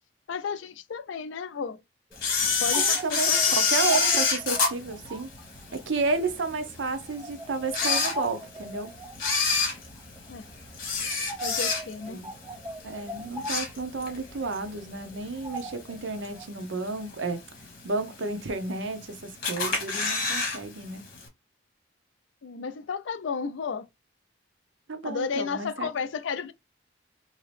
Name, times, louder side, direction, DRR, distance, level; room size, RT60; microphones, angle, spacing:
voice 1, 0.3-1.8 2.6-3.6 10.3-10.5 11.4-12.2 22.4-23.9 25.0-26.5, left 5 dB, 75° left, 0.4 m, -33 dB
sound 1, 2.1-16.4, right 1 dB, 15° right, 0.5 m, -42 dB
Camera, 2.2-5.8 6.3-6.4 7.1-7.2 7.6-8.7 9.1-12.1 12.5-12.8 13.1-14.2 14.5-14.6 15.6-15.7 16.2-16.6 17.1-17.2 17.4-17.5 17.6-17.7 18.5-19.0 19.4-20.6 20.8-20.9 21.2-21.3, left 4 dB, 50° left, 1.4 m, -26 dB
voice 2, 2.8-3.3 3.6-5.3 5.7-8.9 12.1-12.3 12.8-17.4 17.8-21.0 24.9-25.9, right 3 dB, 75° right, 0.6 m, -31 dB
2.9 x 2.7 x 3.2 m
head